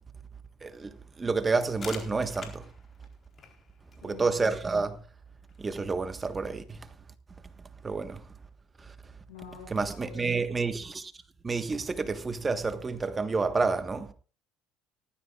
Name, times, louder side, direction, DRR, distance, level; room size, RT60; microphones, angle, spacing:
voice 1, 0.6-2.7 4.0-5.0 5.6-6.9 7.8-8.3 8.8-8.9 9.7-11.1 11.4-14.1, right 4 dB, 25° right, 1.5 m, -29 dB
sound 1, 1.5-7.0, left 5 dB, 40° left, 4.1 m, -50 dB
voice 2, 4.0-4.4 9.3-10.7, left 7 dB, 90° left, 6.6 m, -48 dB
18.5 x 13.5 x 2.5 m
supercardioid pair, 75°, 0 cm